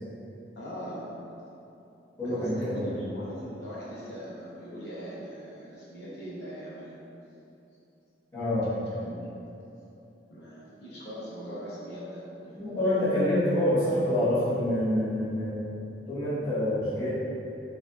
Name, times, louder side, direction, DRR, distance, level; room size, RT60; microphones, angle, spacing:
voice 1, 0.6-1.1 2.2-7.0 8.9-9.3 10.3-12.9, equal, 65° left, -8 dB, 0.7 m, -41 dB
voice 2, 2.2-2.9 8.3-8.7 12.6-15.6 16.1-17.1, left 1 dB, 20° left, -14 dB, 1.4 m, -26 dB
4.7 x 2.6 x 2.3 m, 2.9 s
head